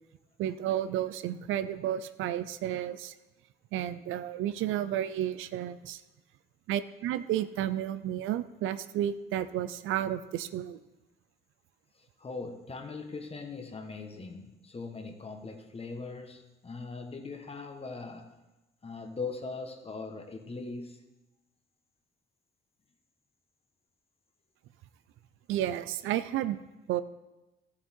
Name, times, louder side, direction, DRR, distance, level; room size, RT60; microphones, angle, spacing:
voice 1, 0.4-3.1 3.7-6.0 6.7-10.8 25.5-26.6 26.9-27.0, right 11 dB, 85° right, 13 dB, 0.5 m, -32 dB
voice 2, 11.9-18.3 18.8-21.1, left 4 dB, 30° left, 5 dB, 1.4 m, -40 dB
14.0 x 7.3 x 4.4 m, 1.0 s
cardioid pair, 90°, 20 cm